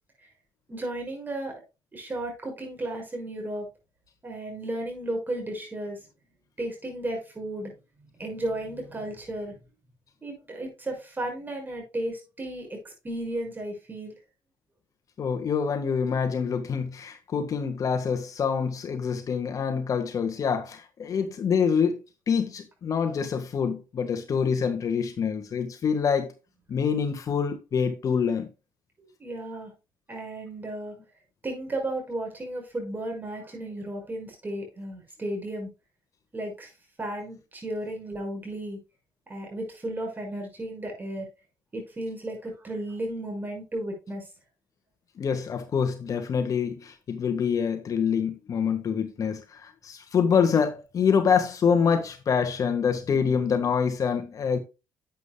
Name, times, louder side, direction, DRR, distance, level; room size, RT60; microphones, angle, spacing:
voice 1, 0.7-1.5 1.9-3.7 4.2-6.0 6.6-7.7 8.0-9.6 10.2-14.1 29.0-29.7 30.1-30.9 31.4-35.7 36.3-36.7 37.0-38.8 39.3-41.3 41.7-44.3 53.1-53.4, right 1 dB, 25° right, 6.0 m, -34 dB
voice 2, 15.2-26.3 26.7-28.5 45.2-54.6, left 6 dB, 50° left, 1.6 m, -26 dB
11.5 x 8.4 x 2.3 m
cardioid pair, 90°, 8 cm